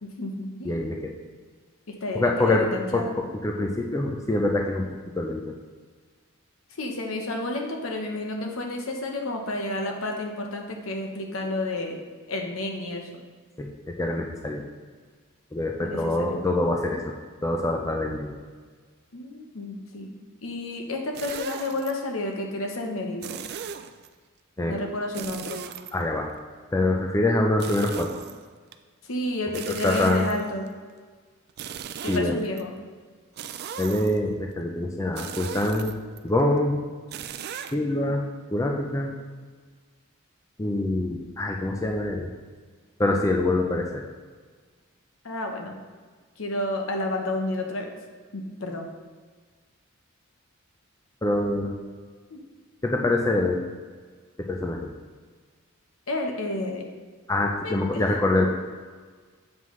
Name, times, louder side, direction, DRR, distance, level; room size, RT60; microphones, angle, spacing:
voice 1, 0.0-0.7 1.9-3.1 6.7-12.0 12.3-13.2 15.8-16.4 19.1-20.1 20.4-23.4 24.7-25.6 29.0-30.7 32.0-32.7 45.2-45.7 46.4-47.9 48.3-48.9 52.3-52.5 56.1-56.8 57.4-57.7, left 2 dB, 70° left, 2 dB, 0.9 m, -31 dB
voice 2, 0.7-1.2 2.1-4.9 5.2-5.5 13.6-14.6 15.5-17.0 17.4-18.3 24.6-24.7 25.9-26.3 26.7-28.1 29.7-30.2 32.1-32.4 33.8-36.0 36.2-36.8 37.7-38.2 38.5-39.1 40.6-42.3 43.0-44.1 51.2-51.7 52.8-53.6 54.4-54.9 57.3-58.5, left 2 dB, 15° left, 1 dB, 0.4 m, -25 dB
sound 1, 21.1-21.9 23.2-24.1 25.1-26.4 27.6-28.7 29.5-30.7 31.5-32.6 33.4-34.3 35.2-36.2 37.1-37.7, right 8 dB, 50° right, 0.3 m, -37 dB
7.5 x 5.5 x 3.2 m, 1.5 s
head